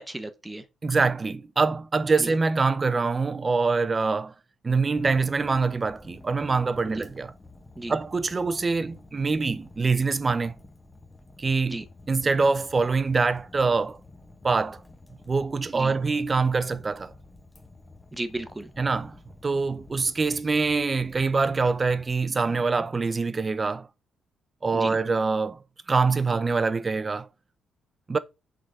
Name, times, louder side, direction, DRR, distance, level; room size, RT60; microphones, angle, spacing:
voice 1, 0.0-0.6 2.2-2.3 6.8-7.0 7.8-7.9 11.7-11.8 15.7-15.9 18.1-18.7 24.7-25.0, right 1 dB, 10° right, 0.9 m, -35 dB
voice 2, 0.8-4.3 4.6-7.3 7.9-10.5 11.4-14.0 14.4-14.8 15.3-17.1 18.8-19.2 19.4-23.9 24.6-25.6 25.9-27.3 28.1-28.2, right 4 dB, 30° right, 0.6 m, -24 dB
Fire, 4.9-22.1, left 2 dB, 15° left, 1.0 m, -50 dB
6.3 x 3.8 x 4.7 m
cardioid pair, 90°, 0 cm